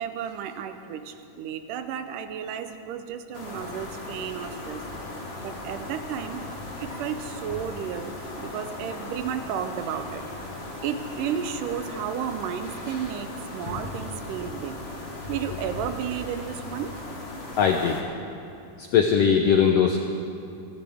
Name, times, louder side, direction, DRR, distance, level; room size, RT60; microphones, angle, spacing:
voice 1, 0.0-4.9 5.4-6.5 6.8-10.2 10.8-14.8 15.3-16.9, right 8 dB, 80° right, 9 dB, 2.4 m, -33 dB
sound 1, 3.3-18.0, left 2 dB, 60° left, 0.6 m, -37 dB
voice 2, 17.6-18.0 18.8-20.0, left 7 dB, 85° left, 3 dB, 1.4 m, -20 dB
28.0 x 11.5 x 3.6 m, 2.7 s
omnidirectional pair, 3.7 m